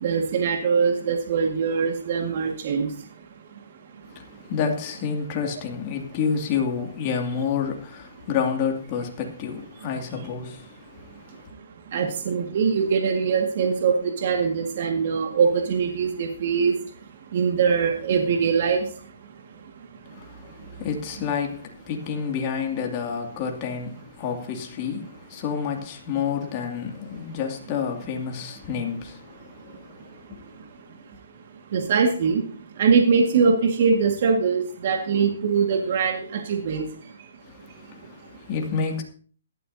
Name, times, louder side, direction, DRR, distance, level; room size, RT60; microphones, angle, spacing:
voice 1, 0.0-2.9 11.9-16.8 17.3-18.9 31.7-32.4 32.8-36.8, right 5 dB, 50° right, 1.9 m, -22 dB
voice 2, 4.1-11.3 20.1-30.4 37.4-39.0, left 6 dB, 30° left, 2.5 m, -29 dB
16.5 x 12.5 x 2.8 m
hypercardioid pair, 150°, 0 cm